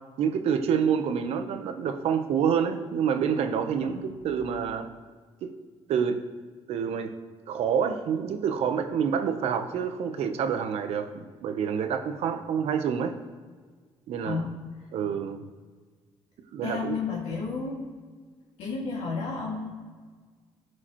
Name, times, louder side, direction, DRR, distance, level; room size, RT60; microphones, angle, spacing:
voice 1, 0.2-4.9 5.4-5.5 5.9-6.2 6.7-7.1 7.5-13.2 14.1-14.4 14.9-15.5 16.5-17.0, right 7 dB, 75° right, 7 dB, 0.8 m, -27 dB
voice 2, 14.2-14.5 16.6-17.8 18.6-19.7, left 4 dB, 90° left, -3 dB, 2.1 m, -32 dB
14.0 x 4.8 x 3.0 m, 1.5 s
cardioid pair, 125°, 11 cm